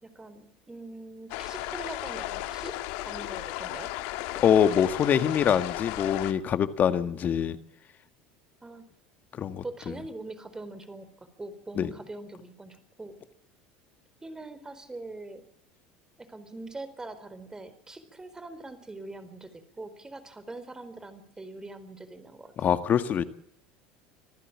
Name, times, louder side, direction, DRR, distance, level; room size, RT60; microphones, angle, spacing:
voice 1, 0.0-2.7 3.1-3.9 8.6-8.8 9.6-11.1 11.4-13.2 14.2-15.4 16.2-22.8, right 2 dB, 15° right, 13 dB, 4.3 m, -42 dB
sound 1, 1.3-6.3, left 16 dB, 70° left, 1.4 m, -35 dB
voice 2, 4.3-7.6 9.3-9.6 11.8-11.9 22.6-23.2, left 8 dB, 45° left, 11 dB, 1.9 m, -24 dB
26.0 x 15.0 x 7.3 m, 0.70 s
hypercardioid pair, 85°, 4 cm